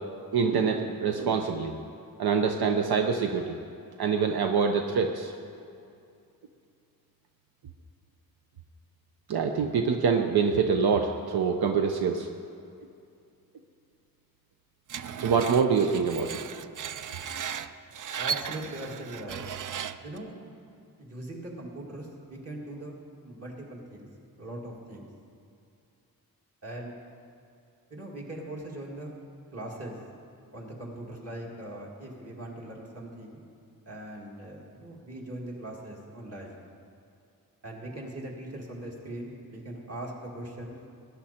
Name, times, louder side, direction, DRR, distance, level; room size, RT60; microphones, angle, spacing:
voice 1, 0.0-1.7 2.2-3.6 4.0-5.3 9.3-12.3 15.2-16.4, right 5 dB, 80° right, 4 dB, 0.8 m, -25 dB
Screech, 14.9-20.2, right 8 dB, 55° right, 0.5 m, -36 dB
voice 2, 18.2-19.5 20.0-20.3 21.0-23.0 23.2-24.1 24.4-25.1 26.6-26.9 27.9-29.1 29.5-30.0 30.5-33.5 33.9-36.6 37.6-40.7, right 1 dB, 40° right, -2 dB, 2.3 m, -40 dB
19.5 x 10.0 x 4.3 m, 2.5 s
wide cardioid pair, 160°, 37 cm